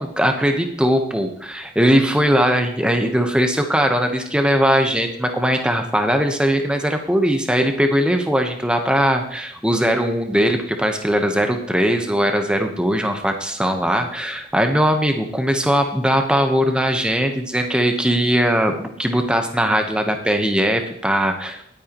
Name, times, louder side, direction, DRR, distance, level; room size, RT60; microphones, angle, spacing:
voice 1, 0.0-21.6, equal, 5° right, 5 dB, 1.1 m, -20 dB
19.0 x 9.1 x 3.1 m, 0.71 s
head